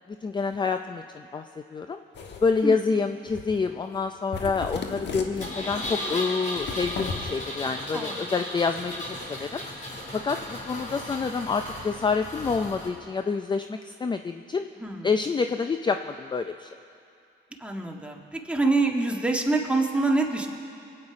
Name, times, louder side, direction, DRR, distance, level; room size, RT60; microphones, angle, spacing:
voice 1, 0.0-2.0 2.4-9.6 10.1-14.6 15.0-16.7, left 4 dB, 25° left, 7 dB, 0.5 m, -27 dB
sound 1, 2.1-2.6 3.3-3.7 3.9-4.1 4.3-6.0 6.5-7.3, left 5 dB, 60° left, 1.3 m, -36 dB
Engine, 5.4-12.9, left 1 dB, 40° left, 4.3 m, -35 dB
voice 2, 14.8-15.1 17.6-20.5, right 3 dB, 5° right, 0 dB, 1.6 m, -25 dB
22.5 x 8.8 x 4.9 m, 2.6 s
cardioid pair, 90°, 20 cm